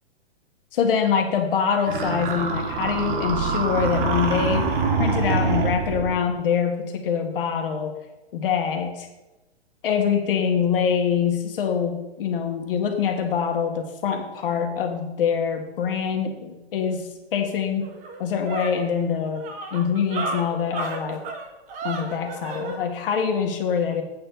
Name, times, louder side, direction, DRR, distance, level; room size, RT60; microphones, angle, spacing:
voice 1, 0.7-4.7 5.0-7.9 8.3-9.1 9.8-17.9 18.2-19.4 19.7-21.2 21.8-24.0, left 7 dB, 55° left, 4 dB, 1.8 m, -24 dB
sound 1, 1.9-6.2, right 4 dB, 50° right, 1.7 m, -25 dB
sound 2, 17.3-17.4 17.8-22.8, right 3 dB, 25° right, 1.2 m, -33 dB
8.5 x 4.4 x 7.1 m, 1.0 s
hypercardioid pair, 125°, 32 cm